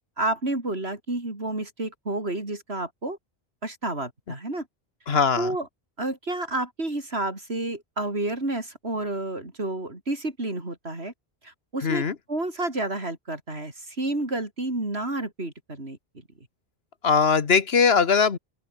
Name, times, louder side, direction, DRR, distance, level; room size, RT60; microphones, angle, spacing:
voice 1, 0.2-3.2 3.6-4.7 5.4-5.7 6.0-11.1 11.4-16.0, right 2 dB, 80° right, 5.2 m, -30 dB
voice 2, 5.1-5.5 11.8-12.1 17.0-18.4, left 5 dB, 75° left, 1.6 m, -20 dB
open air
omnidirectional pair, 1.0 m